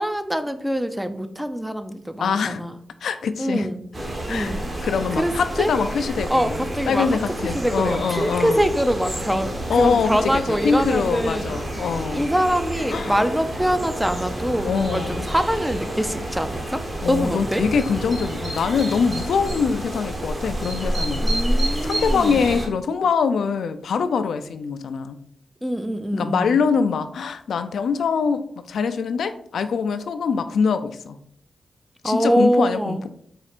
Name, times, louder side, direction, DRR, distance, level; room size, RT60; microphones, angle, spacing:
voice 1, 0.0-2.7 3.4-3.8 4.3-4.6 5.2-5.3 5.6-5.7 6.3-7.2 7.5-11.5 12.1-16.8 17.1-17.6 21.2-22.4 25.6-26.6 32.0-33.0, equal, 5° right, 9 dB, 0.4 m, -24 dB
voice 2, 2.2-2.6 3.0-3.7 4.3-4.6 4.8-8.6 9.7-12.3 12.9-13.2 14.6-15.3 17.0-21.3 21.8-25.2 26.1-31.2 32.0-33.1, left 5 dB, 90° left, 10 dB, 0.3 m, -23 dB
sound 1, 3.9-22.7, right 1 dB, 35° right, 1.2 m, -29 dB
4.3 x 2.4 x 4.2 m, 0.67 s
cardioid pair, 80°, 0 cm